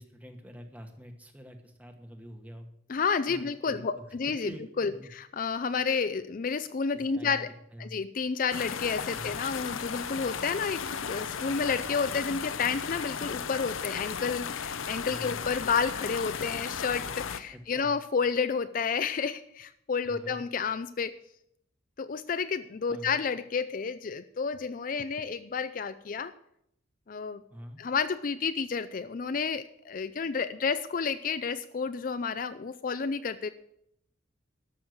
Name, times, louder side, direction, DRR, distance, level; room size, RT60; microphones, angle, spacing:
voice 1, 0.0-2.7 3.3-4.2 4.4-5.1 6.9-7.9 9.0-9.3 15.1-15.4 17.5-18.0 20.0-20.4 22.9-23.2 27.5-27.8, equal, 5° right, 5 dB, 1.3 m, -46 dB
voice 2, 2.9-4.5 4.8-7.5 7.8-21.2 22.0-26.3 27.1-27.4 27.8-33.5, left 5 dB, 45° left, 12 dB, 0.4 m, -30 dB
sound 1, 8.5-17.4, left 6 dB, 90° left, 0.7 m, -35 dB
13.0 x 6.3 x 7.9 m, 0.75 s
head